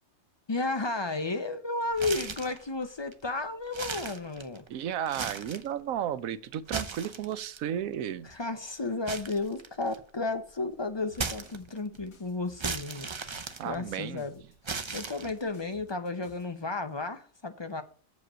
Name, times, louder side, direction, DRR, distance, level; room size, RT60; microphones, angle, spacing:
voice 1, 0.5-4.6 8.2-14.3 14.7-17.8, left 3 dB, 30° left, 0.5 m, -33 dB
sound 1, 1.9-2.6 3.1-3.2 3.7-4.7 5.0-5.7 6.5-7.6 9.1-10.1 11.1-12.0 12.6-14.2 14.6-15.6, right 4 dB, 40° right, 0.4 m, -36 dB
voice 2, 4.7-8.3 13.6-14.2, right 10 dB, 80° right, 1.1 m, -33 dB
sound 2, 11.1-16.5, left 7 dB, 85° left, 1.6 m, -57 dB
7.5 x 5.2 x 6.1 m
omnidirectional pair, 1.4 m